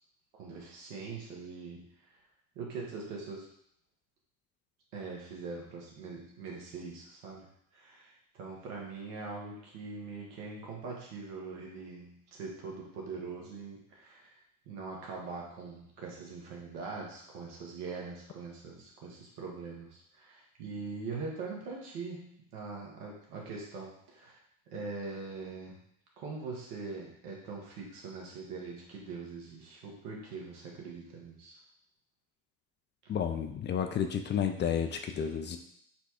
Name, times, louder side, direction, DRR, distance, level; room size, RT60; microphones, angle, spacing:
voice 1, 0.3-2.2 2.5-3.5 4.9-7.5 7.7-14.3 14.7-24.4 24.7-25.8 26.2-31.6, right 4 dB, 75° right, -2 dB, 1.2 m, -42 dB
voice 2, 33.1-35.6, left 8 dB, 25° left, 5 dB, 0.3 m, -31 dB
4.2 x 2.3 x 4.3 m, 0.72 s
hypercardioid pair, 65°, 46 cm